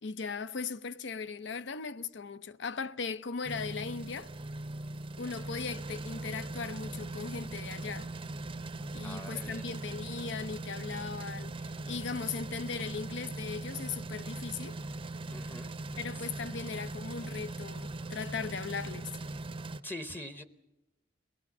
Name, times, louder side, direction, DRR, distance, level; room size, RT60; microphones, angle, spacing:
voice 1, 0.0-4.3 5.2-8.1 8.9-14.8 16.0-19.1, left 5 dB, 65° left, 0.6 m, -38 dB
sound 1, 3.4-19.8, right 2 dB, 30° right, 0.6 m, -40 dB
voice 2, 9.0-9.7 15.3-15.8 19.8-20.4, left 1 dB, 10° left, 0.8 m, -43 dB
22.5 x 18.0 x 7.2 m
head